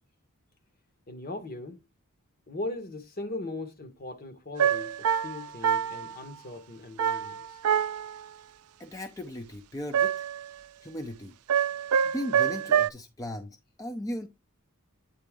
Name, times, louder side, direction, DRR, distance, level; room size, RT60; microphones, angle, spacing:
voice 1, 1.1-1.8 2.5-7.5, left 2 dB, 45° left, 1.1 m, -39 dB
sound 1, 4.6-6.2 7.0-8.2 9.9-10.5 11.5-12.9, right 8 dB, 90° right, 0.4 m, -26 dB
voice 2, 8.8-10.1 10.8-11.3 12.1-14.3, left 1 dB, 15° left, 0.6 m, -37 dB
8.7 x 4.1 x 3.5 m
head